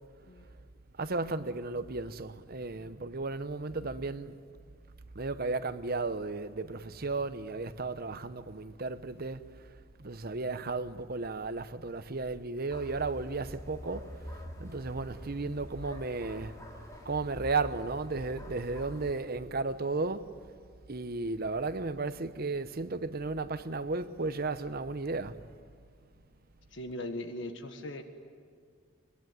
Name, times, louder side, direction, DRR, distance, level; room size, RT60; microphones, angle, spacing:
voice 1, 1.0-4.4 5.1-9.7 10.0-20.4 20.9-25.5, right 3 dB, 50° right, 0.9 m, -34 dB
sound 1, 12.7-19.1, equal, 15° left, 3.8 m, -45 dB
voice 2, 26.7-28.0, left 1 dB, 65° left, 1.6 m, -39 dB
23.0 x 22.5 x 9.3 m
head